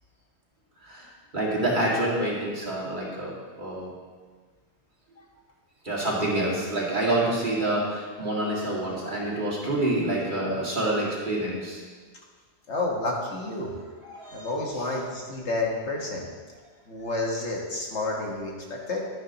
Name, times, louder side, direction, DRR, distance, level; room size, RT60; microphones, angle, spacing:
voice 1, 1.3-3.9 5.8-11.8 14.0-14.5, right 1 dB, 45° right, -5 dB, 2.4 m, -27 dB
voice 2, 12.7-13.7 14.3-16.3 16.9-19.1, left 2 dB, 80° left, -1 dB, 1.9 m, -30 dB
11.5 x 10.0 x 3.0 m, 1.5 s
omnidirectional pair, 1.2 m